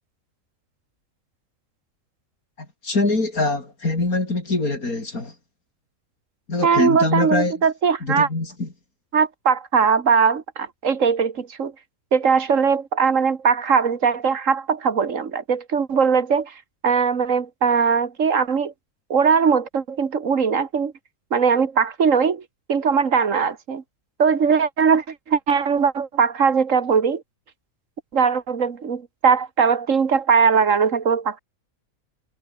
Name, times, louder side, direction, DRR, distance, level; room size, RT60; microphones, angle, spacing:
voice 1, 2.6-5.3 6.5-7.5 8.0-8.7, left 2 dB, 90° left, 5.4 m, -23 dB
voice 2, 6.6-8.3 9.1-11.7 12.1-16.5 16.8-18.7 19.1-20.9 21.3-22.4 22.7-23.8 24.2-27.2 28.1-31.4, right 6 dB, 65° right, 1.9 m, -20 dB
omnidirectional pair, 1.5 m